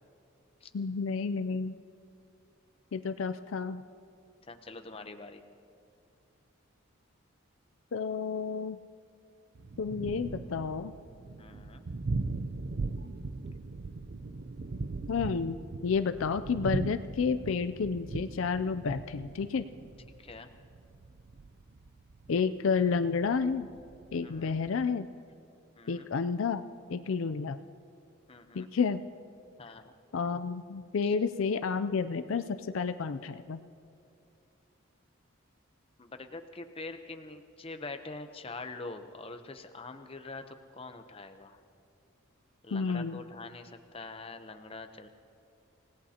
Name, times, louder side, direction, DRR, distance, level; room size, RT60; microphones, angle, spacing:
voice 1, 0.7-1.7 2.9-3.8 7.9-8.8 9.8-10.9 15.1-19.6 22.3-23.7 24.1-25.1 25.9-26.6 26.9-27.6 28.5-29.0 30.1-32.4 32.7-33.6 42.7-43.2, left 5 dB, 70° left, 10 dB, 0.4 m, -30 dB
voice 2, 4.5-5.4 11.4-11.9 20.2-20.5 24.2-24.5 25.8-26.1 28.3-28.7 29.6-29.9 31.0-31.1 36.0-41.6 42.6-45.1, left 3 dB, 25° left, 7 dB, 0.7 m, -44 dB
Thunder, 9.5-24.8, right 3 dB, 50° right, 0.5 m, -39 dB
28.0 x 17.5 x 2.9 m, 2.5 s
head